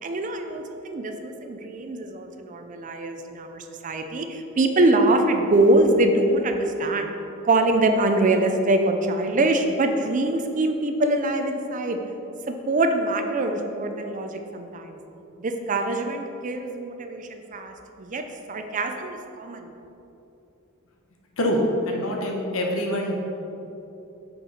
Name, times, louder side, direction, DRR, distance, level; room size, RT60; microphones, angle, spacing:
voice 1, 0.0-7.1 7.4-12.0 12.5-15.0 15.4-17.7 18.0-18.2 18.5-19.7, right 2 dB, 40° right, 5 dB, 0.5 m, -23 dB
voice 2, 21.9-23.2, equal, 80° left, 0 dB, 1.0 m, -25 dB
6.3 x 4.7 x 4.9 m, 2.9 s
head